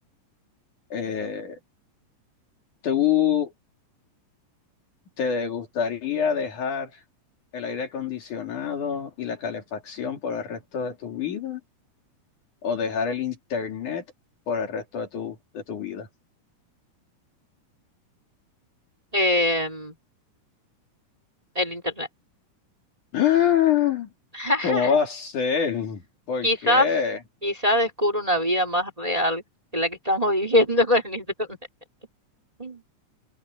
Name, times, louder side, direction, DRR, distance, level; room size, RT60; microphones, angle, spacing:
voice 1, 0.9-1.6 2.8-3.5 5.2-7.0 7.5-11.6 12.6-14.0 14.5-16.1 23.1-24.1 24.6-27.2, left 8 dB, 70° left, 4.4 m, -26 dB
voice 2, 19.1-19.9 21.6-22.1 24.3-24.9 26.4-26.9 27.4-29.4 29.7-31.6 32.6-32.8, left 1 dB, 10° right, 3.9 m, -23 dB
omnidirectional pair, 3.6 m